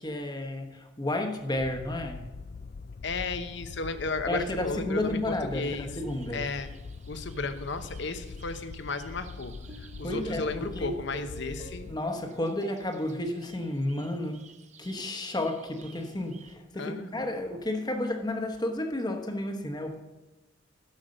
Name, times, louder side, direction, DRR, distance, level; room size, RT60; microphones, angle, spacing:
voice 1, 0.0-2.2 4.3-6.5 10.0-11.0 11.8-14.4 14.8-20.0, left 1 dB, 20° left, 1.0 m, -32 dB
sound 1, 1.6-12.0, left 4 dB, 40° left, 0.3 m, -43 dB
voice 2, 3.0-5.9 6.3-6.7 7.1-9.5 10.0-11.9 16.8-17.3, left 3 dB, 65° left, 0.9 m, -34 dB
sound 2, 5.5-16.5, right 3 dB, 40° right, 0.7 m, -52 dB
11.5 x 6.5 x 6.4 m
head